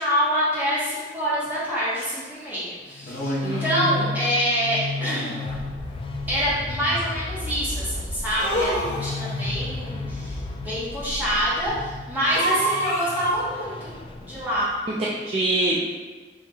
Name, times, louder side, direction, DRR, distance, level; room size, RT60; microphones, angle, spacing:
voice 1, 0.0-5.3 6.3-13.9 14.2-14.7, equal, 10° right, -10 dB, 1.5 m, -26 dB
sound 1, 2.0-2.1 3.0-3.8 5.0-5.7 8.4-9.4 12.3-13.4, right 1 dB, 50° left, 0.9 m, -28 dB
sound 2, 2.9-14.8, left 2 dB, 30° left, 0.3 m, -33 dB
voice 2, 3.4-4.1 15.0-15.9, right 2 dB, 35° right, -6 dB, 0.5 m, -25 dB
4.5 x 2.9 x 3.4 m, 1.3 s
head